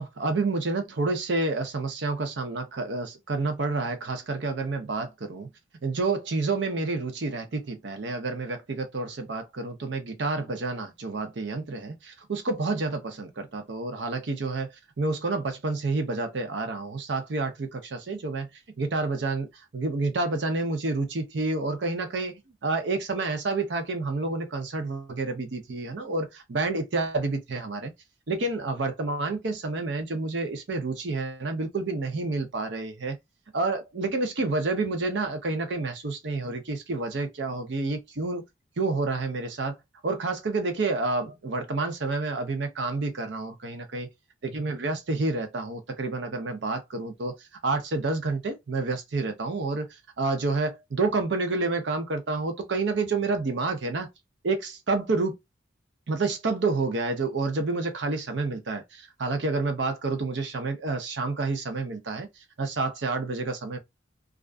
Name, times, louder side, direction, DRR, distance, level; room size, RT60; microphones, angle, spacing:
voice 1, 0.0-5.5 5.8-14.7 15.0-18.5 18.8-19.5 19.7-27.9 28.3-33.2 33.5-38.4 38.8-44.1 44.5-47.4 47.6-49.9 50.2-54.1 54.4-55.3 56.1-62.3 62.6-63.8, right 3 dB, 60° right, 0.6 m, -29 dB
2.4 x 2.2 x 2.3 m
head